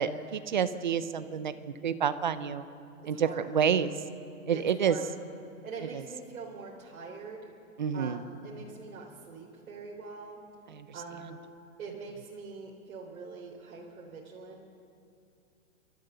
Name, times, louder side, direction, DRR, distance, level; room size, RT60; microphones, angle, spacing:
voice 1, 0.0-2.6 3.1-3.9 4.5-5.0 7.8-8.2 10.7-10.9, right 7 dB, 35° right, 13 dB, 0.6 m, -29 dB
voice 2, 3.0-3.5 4.5-5.1 5.6-7.5 7.9-10.4 10.9-11.5 11.8-14.6, right 4 dB, 75° right, -2 dB, 3.7 m, -44 dB
29.5 x 13.0 x 6.8 m, 2.6 s
hypercardioid pair, 175°, 42 cm